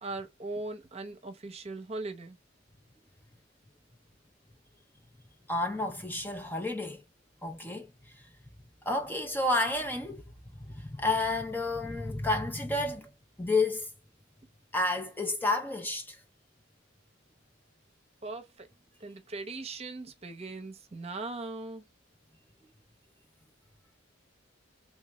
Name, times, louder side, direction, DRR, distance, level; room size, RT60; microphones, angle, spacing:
voice 1, 0.0-2.4 18.2-18.7 19.0-21.8, right 3 dB, 35° right, 0.8 m, -39 dB
voice 2, 5.5-7.0 7.4-8.3 8.9-10.2 10.5-13.1 13.4-13.9 14.7-16.2, left 2 dB, 10° left, 0.5 m, -31 dB
3.5 x 2.6 x 3.0 m
head